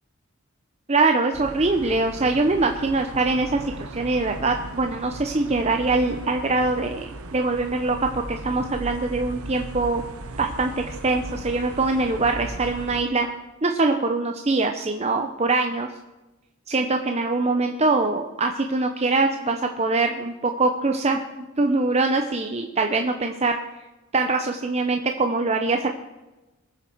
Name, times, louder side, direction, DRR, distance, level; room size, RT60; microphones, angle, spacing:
voice 1, 0.9-10.0 10.4-13.3 13.6-15.9 16.7-23.6 24.1-25.9, right 3 dB, 30° right, 5 dB, 0.7 m, -23 dB
sound 1, 1.3-13.0, right 2 dB, 80° right, 1.0 m, -37 dB
22.5 x 7.6 x 4.6 m, 1.1 s
head